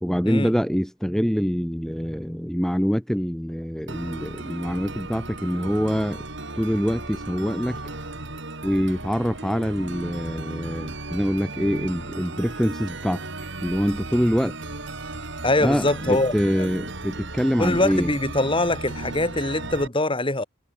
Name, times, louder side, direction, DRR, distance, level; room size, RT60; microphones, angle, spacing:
voice 1, 0.0-6.2 6.5-7.8 8.6-13.3 13.6-14.6 15.6-18.1, equal, ahead, 1.4 m, -25 dB
sound 1, 3.9-19.9, right 2 dB, 60° right, 4.2 m, -35 dB
voice 2, 15.4-16.7 17.6-20.4, left 2 dB, 25° left, 2.6 m, -23 dB
head